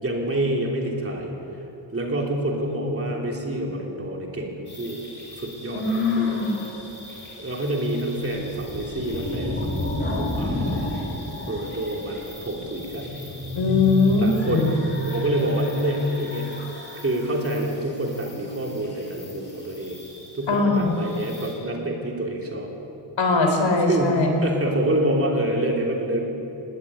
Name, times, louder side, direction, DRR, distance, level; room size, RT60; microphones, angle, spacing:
voice 1, 0.0-1.3 1.9-5.0 5.4-6.4 7.4-10.9 11.5-13.1 14.2-14.6 15.0-16.5 16.9-20.0 20.3-22.7 23.9-26.2, right 1 dB, 30° right, 0 dB, 3.4 m, -27 dB
sound 1, 4.7-21.6, equal, 25° left, 5.7 m, -33 dB
voice 2, 5.7-6.5 13.5-14.7 20.5-21.0 23.2-24.4, left 3 dB, 75° left, 4 dB, 4.0 m, -21 dB
19.0 x 17.0 x 9.9 m, 3.0 s
wide cardioid pair, 150°, 44 cm